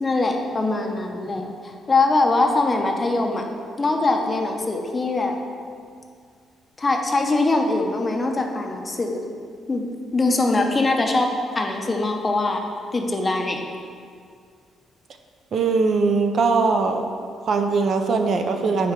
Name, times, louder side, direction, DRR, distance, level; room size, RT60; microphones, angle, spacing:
voice 1, 0.0-3.4 3.8-5.3 6.8-9.2 9.7-9.8 10.1-11.3 11.5-12.6 12.9-13.6, left 2 dB, 20° left, 3 dB, 0.6 m, -22 dB
voice 2, 15.5-17.0 17.5-18.9, right 4 dB, 45° right, 5 dB, 0.4 m, -20 dB
4.9 x 4.5 x 5.8 m, 2.2 s
cardioid pair, 140°, 0 cm